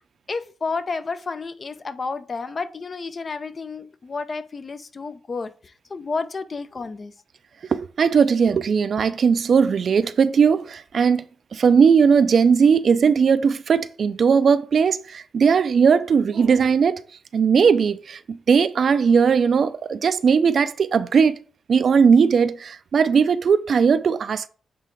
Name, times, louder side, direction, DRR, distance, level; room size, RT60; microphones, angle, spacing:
voice 1, 0.3-7.1, left 4 dB, 40° left, 0.6 m, -31 dB
voice 2, 7.7-11.2 11.5-17.0 17.3-21.4 21.7-24.5, right 6 dB, 60° right, 0.4 m, -18 dB
7.6 x 3.6 x 3.8 m
cardioid pair, 80°, 0 cm